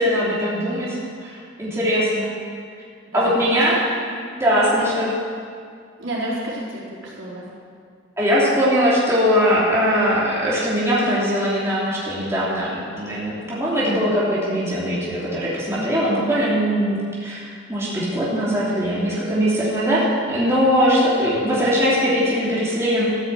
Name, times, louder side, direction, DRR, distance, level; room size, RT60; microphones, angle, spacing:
voice 1, 0.0-2.3 3.1-3.8 4.4-5.1 8.2-17.4 17.7-23.0, equal, 15° right, -8 dB, 2.7 m, -20 dB
voice 2, 3.1-3.6 4.7-5.0 6.0-7.4 15.7-16.0, right 1 dB, 75° right, -7 dB, 4.0 m, -30 dB
14.0 x 7.1 x 8.1 m, 2.2 s
head